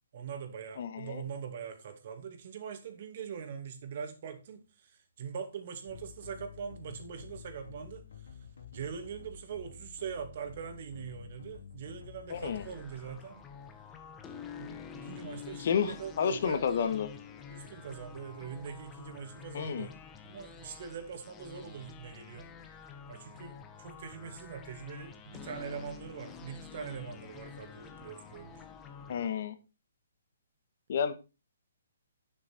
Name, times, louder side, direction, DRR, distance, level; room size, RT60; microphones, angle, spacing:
voice 1, 0.1-4.9 5.2-8.1 8.7-13.4 14.6-16.9 17.5-20.0 20.2-22.5 23.1-28.6, right 7 dB, 50° right, 2.3 m, -42 dB
voice 2, 0.8-1.2 12.3-12.6 15.6-17.1 19.5-19.9 29.1-29.5 30.9-31.1, left 7 dB, 55° left, 1.6 m, -31 dB
sound 1, 5.9-12.8, left 6 dB, 75° left, 3.5 m, -50 dB
sound 2, 12.3-29.3, left 7 dB, 15° left, 1.4 m, -48 dB
9.1 x 7.9 x 4.5 m
figure-of-eight pair, 135°, 0 cm